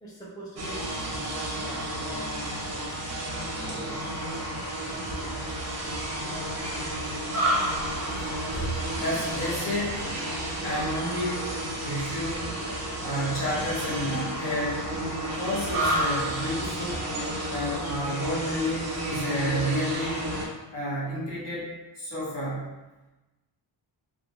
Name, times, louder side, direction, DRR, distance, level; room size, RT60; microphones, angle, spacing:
voice 1, 0.0-2.2, equal, 10° left, -7 dB, 0.6 m, -43 dB
sound 1, 0.6-20.5, right 1 dB, 35° right, 0.6 m, -31 dB
sound 2, 3.6-4.2 4.6-5.0 5.3-7.2 7.7-12.4 12.7-13.7 14.3-15.1, right 2 dB, 85° left, 1.1 m, -42 dB
voice 2, 8.9-10.1 10.6-11.4 11.8-12.5 13.0-14.8 15.4-17.1 17.5-20.2 20.7-22.7, equal, 60° left, -7 dB, 1.1 m, -30 dB
2.4 x 2.2 x 3.0 m, 1.1 s
wide cardioid pair, 115°, 48 cm